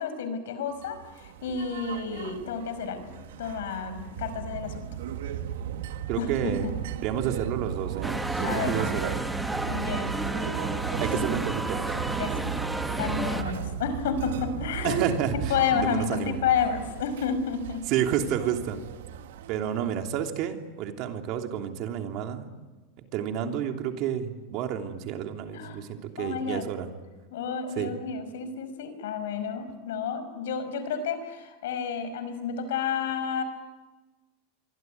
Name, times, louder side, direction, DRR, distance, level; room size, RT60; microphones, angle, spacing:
voice 1, 0.0-4.9 6.2-6.5 8.4-8.9 9.1-9.2 9.6-10.1 11.0-11.3 12.2-12.6 13.0-15.0 15.5-17.8 19.6-19.8 23.4-23.7 25.5-25.8 26.2-26.7 27.3-33.4, left 6 dB, 85° left, 11 dB, 5.6 m, -31 dB
sound 1, 0.8-19.9, right 9 dB, 80° right, 1.8 m, -36 dB
voice 2, 6.1-6.7 7.0-9.1 11.0-11.8 14.8-16.4 17.9-18.8 19.5-22.5 23.1-26.9 27.8-27.9, right 9 dB, 45° right, 4 dB, 3.1 m, -30 dB
sound 2, 8.0-13.4, right 1 dB, 5° right, 1.6 m, -31 dB
26.5 x 23.5 x 9.5 m, 1.2 s
supercardioid pair, 155°, 0 cm